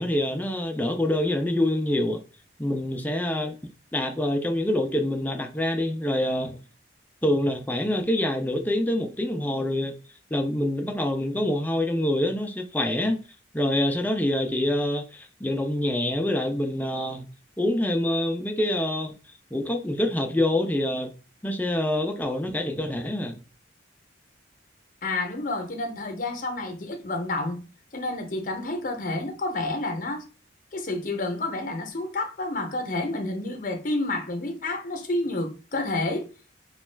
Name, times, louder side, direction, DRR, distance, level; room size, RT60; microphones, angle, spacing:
voice 1, 0.0-2.2 2.6-3.6 3.9-6.6 7.2-9.9 10.3-13.2 13.5-17.3 17.6-19.1 19.5-21.1 21.4-23.3, left 1 dB, 10° left, 0.4 m, -26 dB
voice 2, 25.0-27.6 27.9-30.2 30.7-36.3, left 2 dB, 45° left, 0.7 m, -29 dB
3.0 x 2.3 x 3.2 m
head